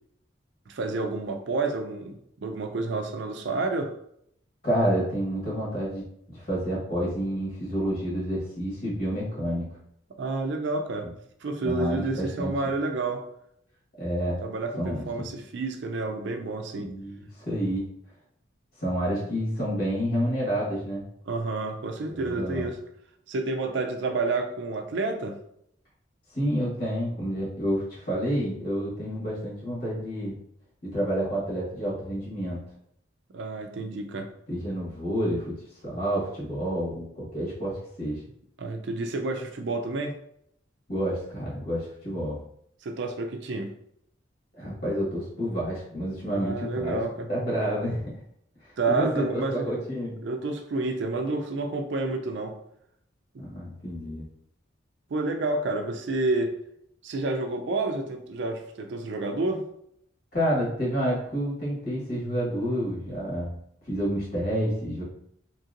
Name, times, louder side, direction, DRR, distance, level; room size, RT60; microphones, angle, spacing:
voice 1, 0.7-3.9 10.2-11.1 11.4-13.3 14.4-16.9 21.3-22.8 23.3-25.4 33.3-34.3 38.6-40.1 42.8-43.7 46.3-47.3 48.8-49.7 50.2-52.6 55.1-56.6 57.0-59.7, right 3 dB, 65° right, 5 dB, 0.4 m, -29 dB
voice 2, 4.6-9.7 11.6-12.5 14.0-14.4 14.8-15.3 16.8-17.9 18.8-21.0 22.1-22.7 26.3-30.4 30.8-32.6 34.5-35.5 35.8-38.2 40.9-42.4 44.5-47.0 47.3-48.1 48.6-50.2 53.4-54.2 60.3-63.6 63.9-65.0, equal, 50° left, -6 dB, 1.5 m, -29 dB
2.9 x 2.8 x 2.5 m, 0.71 s
head